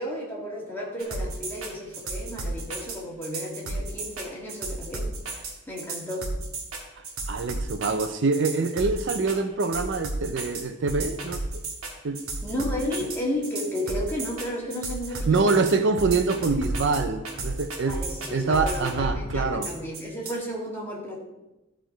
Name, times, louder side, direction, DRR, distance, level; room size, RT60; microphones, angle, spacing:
voice 1, 0.0-6.3 12.4-15.8 17.9-21.2, left 1 dB, 10° left, -4 dB, 1.9 m, -33 dB
sound 1, 1.0-20.3, right 2 dB, 75° right, 1.6 m, -33 dB
voice 2, 7.3-11.6 12.0-12.2 15.3-18.0 18.3-19.7, right 4 dB, 55° right, 8 dB, 0.5 m, -25 dB
12.0 x 4.5 x 4.5 m, 0.99 s
head